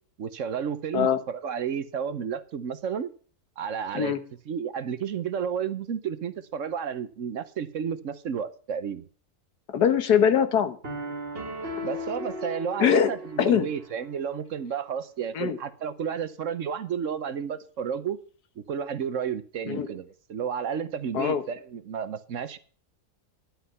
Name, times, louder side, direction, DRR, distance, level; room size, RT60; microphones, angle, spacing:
voice 1, 0.2-3.1 3.6-4.1 4.5-9.0 11.8-18.2 18.6-22.6, right 7 dB, 60° right, 1.1 m, -32 dB
voice 2, 9.7-10.8 12.8-13.1 13.4-13.6 15.3-15.6 19.7-19.9 21.1-21.4, left 8 dB, 85° left, 1.7 m, -22 dB
sound 1, 10.8-14.1, left 1 dB, 40° right, 2.0 m, -36 dB
11.5 x 8.1 x 5.6 m
omnidirectional pair, 1.6 m